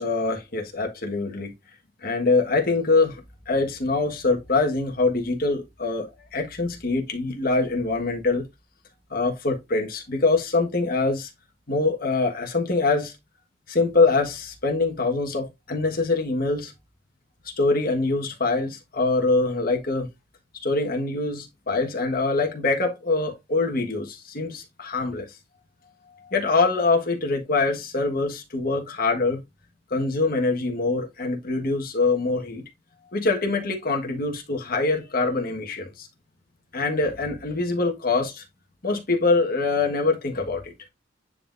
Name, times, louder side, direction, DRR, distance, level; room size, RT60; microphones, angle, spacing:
voice 1, 0.0-1.5 2.0-8.4 9.1-11.3 11.7-13.1 13.7-16.7 17.6-20.1 20.6-25.3 26.2-29.4 29.9-32.6 33.1-36.1 36.7-38.4 38.8-40.7, left 3 dB, 55° left, 1.5 m, -24 dB
9.7 x 3.9 x 2.6 m
head